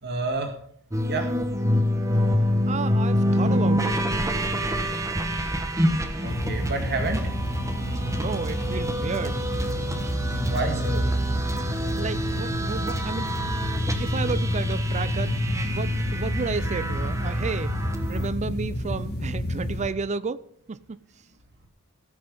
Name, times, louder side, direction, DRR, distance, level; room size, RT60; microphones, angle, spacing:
voice 1, 0.0-0.5 1.1-1.3 6.2-7.2 10.3-11.0, right 2 dB, 50° right, 2.1 m, -29 dB
sound 1, 0.9-18.3, equal, 15° right, 1.2 m, -26 dB
voice 2, 2.7-4.0 8.1-9.4 9.7-10.0 12.0-13.3 13.9-15.4 15.6-17.8 18.1-21.0, right 4 dB, 35° right, 0.5 m, -32 dB
sound 2, 6.2-19.9, equal, 50° left, 1.8 m, -31 dB
17.0 x 6.1 x 5.6 m
head